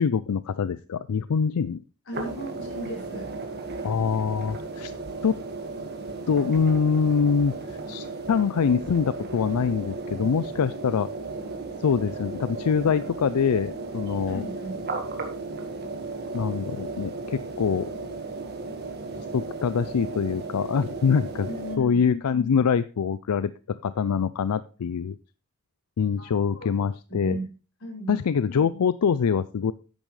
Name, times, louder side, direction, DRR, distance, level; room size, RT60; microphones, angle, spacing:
voice 1, 0.0-1.8 3.8-4.9 5.2-5.4 6.3-11.1 11.8-14.4 16.3-17.9 19.3-21.5 21.8-23.5 23.8-25.2 26.0-27.4 28.1-29.7, left 6 dB, 85° left, 15 dB, 0.4 m, -24 dB
voice 2, 2.1-3.3 14.3-14.8 21.4-22.1 26.2-26.3 26.5-26.8 27.1-27.4 27.8-28.2, right 1 dB, 60° left, -2 dB, 5.3 m, -36 dB
sound 1, 2.1-21.8, right 3 dB, 45° right, 1.7 m, -35 dB
10.5 x 8.9 x 3.2 m, 0.35 s
head